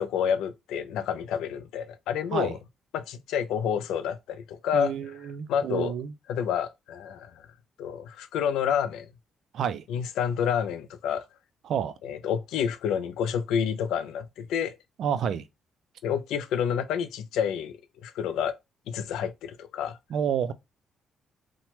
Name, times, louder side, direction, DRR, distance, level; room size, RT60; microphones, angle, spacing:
voice 1, 0.0-2.6 2.9-4.9 5.5-5.9 6.3-7.5 7.8-9.1 9.9-11.2 12.0-14.8 16.0-17.8 18.0-18.6 18.9-20.0, left 8 dB, 85° left, 0.3 m, -29 dB
voice 2, 4.7-6.1 9.5-9.8 11.6-11.9 15.0-15.5 20.1-20.5, right 8 dB, 70° right, 0.3 m, -29 dB
3.0 x 2.1 x 2.9 m
cardioid pair, 90°, 0 cm